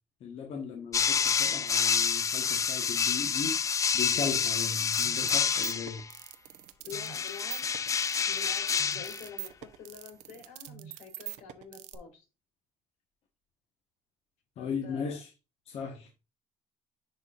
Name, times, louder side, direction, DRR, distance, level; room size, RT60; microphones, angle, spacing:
voice 1, 0.2-3.5 3.9-6.0 14.6-15.3 15.7-16.1, left 6 dB, 55° left, 1.3 m, -37 dB
sound 1, 0.9-6.1 6.9-9.3, left 6 dB, 25° left, 0.4 m, -28 dB
sound 2, 4.5-12.0, right 15 dB, 75° right, 0.7 m, -44 dB
voice 2, 6.8-7.8 8.3-12.2 14.6-15.2, left 6 dB, 80° left, 3.9 m, -47 dB
10.5 x 4.2 x 2.5 m
cardioid pair, 125°, 12 cm